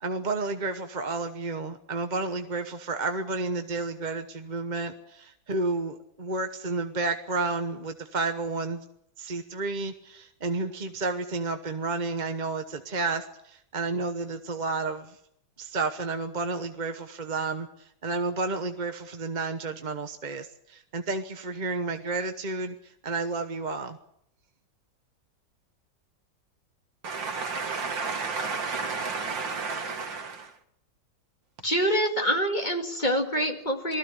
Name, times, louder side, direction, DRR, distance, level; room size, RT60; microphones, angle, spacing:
voice 1, 0.0-8.8 9.2-15.2 15.6-24.0, right 3 dB, 30° right, 7 dB, 0.9 m, -31 dB
voice 2, 27.0-30.5, right 4 dB, 85° right, 6 dB, 2.5 m, -32 dB
voice 3, 31.6-34.0, equal, 25° left, 3 dB, 2.3 m, -26 dB
20.0 x 14.5 x 9.7 m, 0.74 s
omnidirectional pair, 2.0 m